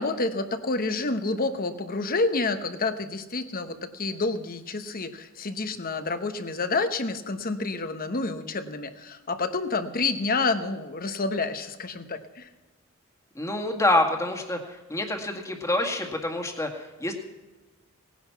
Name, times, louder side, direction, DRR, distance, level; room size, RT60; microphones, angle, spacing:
voice 1, 0.0-12.5, left 3 dB, 45° left, 9 dB, 1.1 m, -29 dB
voice 2, 13.4-17.1, left 1 dB, 15° left, 2 dB, 1.9 m, -27 dB
18.5 x 10.5 x 5.8 m, 1.2 s
head